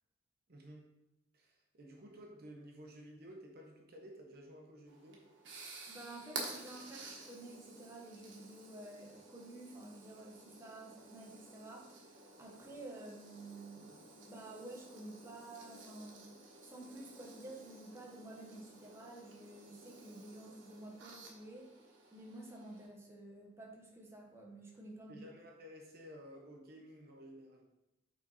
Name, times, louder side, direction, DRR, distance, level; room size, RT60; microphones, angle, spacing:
voice 1, 0.5-0.9 1.3-5.2 25.1-27.6, equal, 55° right, 0 dB, 0.8 m, -53 dB
sound 1, 4.9-22.9, right 3 dB, 75° right, 1.2 m, -52 dB
voice 2, 5.9-16.2 16.6-21.7 22.1-25.3, right 2 dB, 15° right, -2 dB, 1.1 m, -51 dB
5.8 x 4.1 x 4.0 m, 0.90 s
head